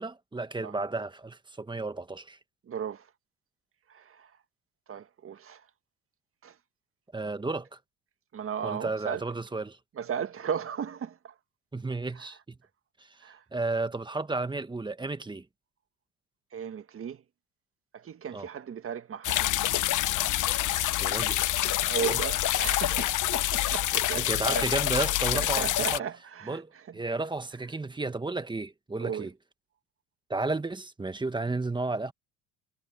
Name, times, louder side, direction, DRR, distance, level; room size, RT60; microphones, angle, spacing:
voice 1, 0.0-2.4 7.1-7.8 8.6-9.8 11.7-12.6 13.0-13.1 13.5-15.4 18.3-18.5 21.0-21.5 22.0-22.2 24.1-26.0 26.4-29.3 30.3-32.1, right 3 dB, 10° right, 1.5 m, -33 dB
voice 2, 2.6-3.1 3.9-4.3 4.9-5.7 6.4-6.6 8.3-9.2 9.9-11.3 12.1-12.3 13.2-13.4 16.5-17.2 17.9-19.4 21.8-24.7 25.3-27.0 29.0-29.3, right 8 dB, 35° right, 1.7 m, -36 dB
sound 1, 19.2-26.0, left 14 dB, 50° left, 1.2 m, -27 dB
supercardioid pair, 100°, 38 cm